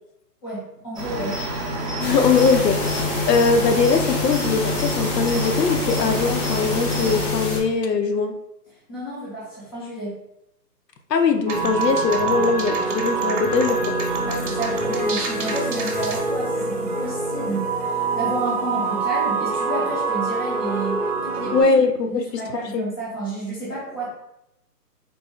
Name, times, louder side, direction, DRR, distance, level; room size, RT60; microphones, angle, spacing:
voice 1, 0.4-1.4 8.9-10.2 14.2-21.7 22.1-24.1, right 1 dB, 15° left, -8 dB, 0.7 m, -31 dB
Cricket, 0.9-7.3, right 2 dB, 25° right, 0.6 m, -29 dB
voice 2, 2.0-8.3 11.1-14.0 21.5-22.8, left 4 dB, 80° left, 6 dB, 0.7 m, -21 dB
sound 1, 2.0-7.6, left 4 dB, 50° left, 1.0 m, -27 dB
sound 2, 11.5-21.6, right 3 dB, 50° right, 0.9 m, -25 dB
4.0 x 2.2 x 3.6 m, 0.84 s
hypercardioid pair, 160°, 48 cm